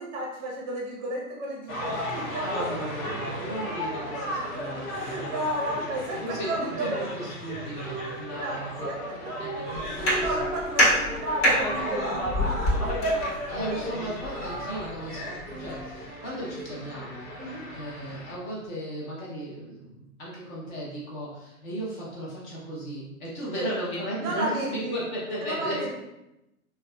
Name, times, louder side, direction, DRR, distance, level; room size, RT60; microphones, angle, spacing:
voice 1, 0.0-3.3 4.9-7.0 7.8-8.6 8.8-9.1 9.8-13.9 15.6-15.7 16.7-17.0 17.4-17.7 23.5-23.7 24.2-25.0 25.4-25.9, right 1 dB, 25° right, -2 dB, 0.7 m, -33 dB
sound 1, 1.7-18.3, equal, 65° left, 1.2 m, -34 dB
voice 2, 2.4-5.5 6.2-8.9 9.4-10.4 13.5-25.9, right 1 dB, 25° left, -5 dB, 0.8 m, -36 dB
sound 2, 5.8-7.5 7.9-11.1 11.4-11.5 11.7-12.3 12.8-14.8 15.2-16.9, right 2 dB, 85° right, 0.6 m, -42 dB
sound 3, 9.8-16.0, equal, 45° left, 1.2 m, -28 dB
3.3 x 2.3 x 2.2 m, 0.93 s
figure-of-eight pair, 100°, 44 cm